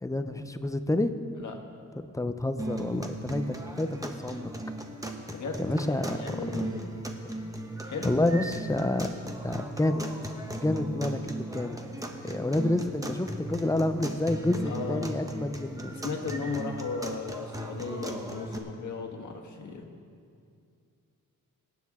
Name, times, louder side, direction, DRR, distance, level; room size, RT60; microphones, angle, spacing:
voice 1, 0.0-1.1 2.1-4.4 5.6-6.2 6.5-6.6 8.0-9.1 9.4-10.0 10.6-11.8 12.2-15.9, left 1 dB, 10° left, 9 dB, 0.5 m, -28 dB
sound 1, 2.6-18.6, right 1 dB, 10° right, 0.9 m, -37 dB
voice 2, 5.3-6.9 7.8-8.2 14.6-15.1 15.9-19.9, left 4 dB, 60° left, 2 dB, 1.5 m, -36 dB
23.0 x 9.5 x 3.6 m, 2.4 s
wide cardioid pair, 140°, 34 cm